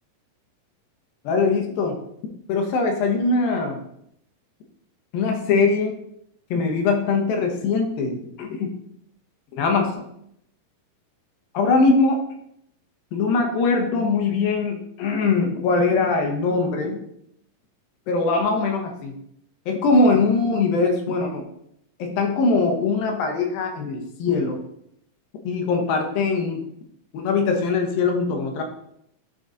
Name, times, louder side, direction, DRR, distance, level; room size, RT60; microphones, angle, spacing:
voice 1, 1.2-2.0 2.5-3.8 5.1-6.0 6.5-8.7 9.5-9.9 11.5-12.2 13.1-17.0 18.1-19.1 19.7-21.4 22.0-24.6 25.4-26.6 27.1-28.6, left 3 dB, 85° left, 3 dB, 2.9 m, -21 dB
12.0 x 4.0 x 3.9 m, 0.73 s
omnidirectional pair, 4.1 m